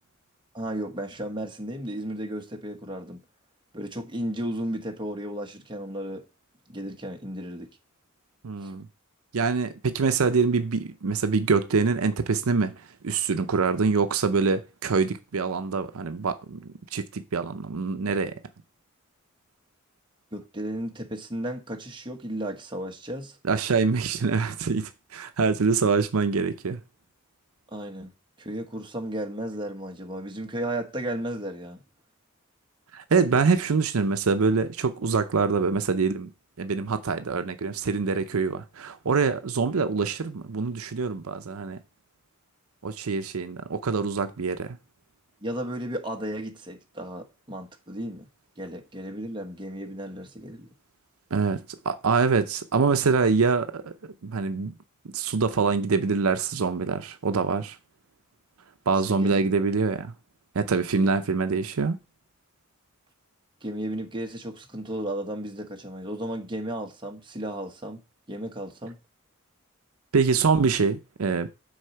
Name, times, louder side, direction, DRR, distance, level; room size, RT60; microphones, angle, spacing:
voice 1, 0.5-3.2 3.7-6.2 6.7-7.7 8.6-8.7 20.3-23.4 27.7-28.1 28.4-31.8 45.4-48.3 48.6-50.7 59.1-59.4 63.6-69.0, right 1 dB, 25° right, 1.1 m, -34 dB
voice 2, 8.4-8.9 9.3-18.3 23.4-26.8 32.9-36.3 36.6-41.8 42.8-44.8 51.3-53.9 54.2-54.7 55.1-57.8 58.9-60.1 60.5-62.0 70.1-71.5, right 4 dB, 80° right, 0.6 m, -25 dB
6.3 x 4.2 x 5.7 m
head